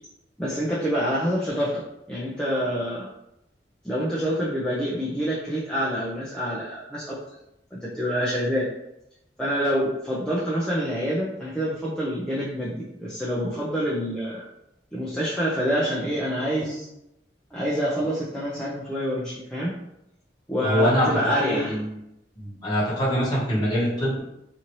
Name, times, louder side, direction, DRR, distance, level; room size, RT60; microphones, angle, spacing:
voice 1, 0.4-1.8 2.1-3.1 3.8-7.2 7.7-8.6 9.4-14.4 14.9-16.9 17.5-19.7 20.5-21.7, equal, 5° left, -8 dB, 0.5 m, -26 dB
voice 2, 20.6-21.1 21.5-21.9 22.4-24.2, equal, 25° left, -8 dB, 1.0 m, -24 dB
2.8 x 2.6 x 3.0 m, 0.84 s
head